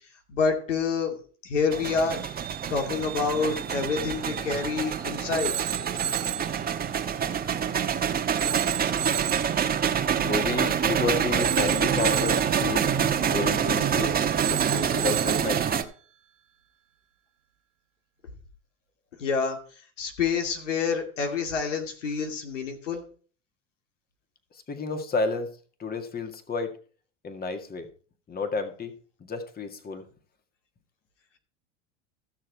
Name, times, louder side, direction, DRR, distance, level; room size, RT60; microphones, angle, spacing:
voice 1, 0.3-1.2 1.4-2.2 2.7-5.5 19.2-19.6 20.0-23.0, left 5 dB, 90° left, 2.5 m, -27 dB
sound 1, 1.7-15.8, right 8 dB, 25° right, 1.2 m, -26 dB
Telephone, 5.4-6.5 8.4-9.6 11.4-12.6 14.4-15.6, right 11 dB, 85° right, 1.0 m, -31 dB
voice 2, 10.2-12.9 13.3-14.2 14.5-15.7 24.5-25.5 25.8-26.8 27.2-27.9 28.3-28.9 29.2-30.1, left 4 dB, 25° left, 1.9 m, -31 dB
15.0 x 6.5 x 4.6 m
hypercardioid pair, 95°, 36 cm